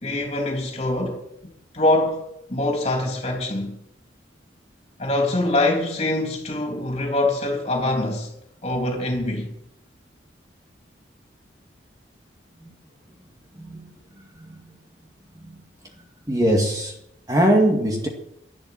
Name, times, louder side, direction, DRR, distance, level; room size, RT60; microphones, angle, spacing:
voice 1, 0.0-1.2 1.4-2.2 2.5-3.8 5.0-8.3 8.6-9.5, left 1 dB, 35° left, 3.4 m, -24 dB
voice 2, 13.6-13.9 14.4-14.6 15.4-15.6 16.3-16.9 17.3-18.1, right 1 dB, 20° right, 2.0 m, -21 dB
12.0 x 11.5 x 7.5 m
head